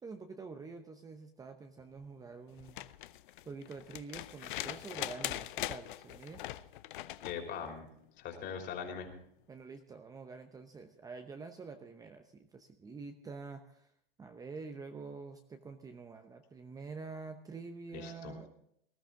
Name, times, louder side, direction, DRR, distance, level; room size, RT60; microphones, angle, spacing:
voice 1, 0.0-2.8 3.5-6.4 9.5-13.9 14.2-18.5, right 4 dB, 10° right, 6 dB, 0.8 m, -47 dB
sound 1, 2.6-7.4 9.1-9.2, left 15 dB, 60° left, 0.7 m, -41 dB
voice 2, 7.2-7.9 8.2-9.2 17.9-18.3, left 7 dB, 35° left, 3 dB, 3.4 m, -41 dB
19.5 x 12.5 x 3.7 m, 0.73 s
hypercardioid pair, 115°, 29 cm